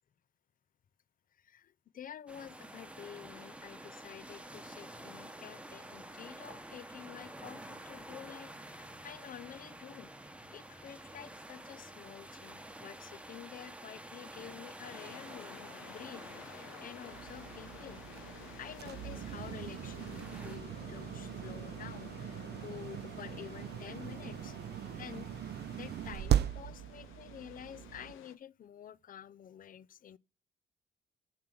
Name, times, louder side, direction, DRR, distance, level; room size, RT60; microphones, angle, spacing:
voice 1, 1.3-10.1 10.5-24.6 25.0-30.2, left 9 dB, 45° left, 0.5 m, -50 dB
sound 1, 2.3-20.6, right 1 dB, 5° right, 1.0 m, -49 dB
sound 2, 14.9-28.4, left 10 dB, 90° left, 1.0 m, -53 dB
sound 3, 17.1-28.1, right 11 dB, 55° right, 0.5 m, -38 dB
7.3 x 5.9 x 7.6 m
cardioid pair, 90°, 20 cm